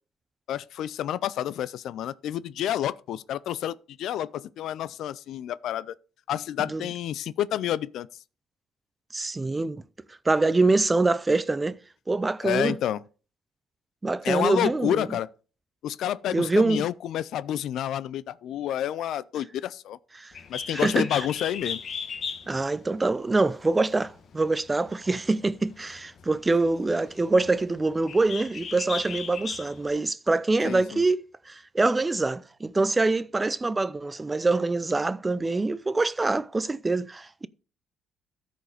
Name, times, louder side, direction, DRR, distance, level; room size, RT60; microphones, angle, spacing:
voice 1, 0.5-5.9 6.3-8.1 12.4-13.0 14.2-15.3 15.8-20.0 20.5-21.8 30.6-31.0, left 11 dB, 75° left, 0.4 m, -29 dB
voice 2, 9.1-9.8 10.3-11.8 12.1-12.8 14.0-15.1 16.3-16.8 20.2-20.3 20.7-21.1 22.5-37.5, right 3 dB, 20° right, 0.5 m, -25 dB
Bird, 20.3-29.9, left 6 dB, 55° left, 1.3 m, -38 dB
13.0 x 5.1 x 5.0 m
cardioid pair, 95°, 0 cm